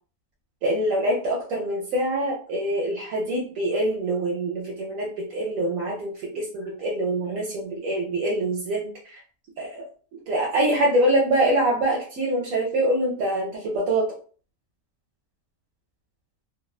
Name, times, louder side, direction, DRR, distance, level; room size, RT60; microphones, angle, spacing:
voice 1, 0.6-9.2 9.6-9.9 10.3-14.1, right 1 dB, 75° right, -2 dB, 0.9 m, -25 dB
2.7 x 2.1 x 2.3 m, 0.42 s
omnidirectional pair, 1.5 m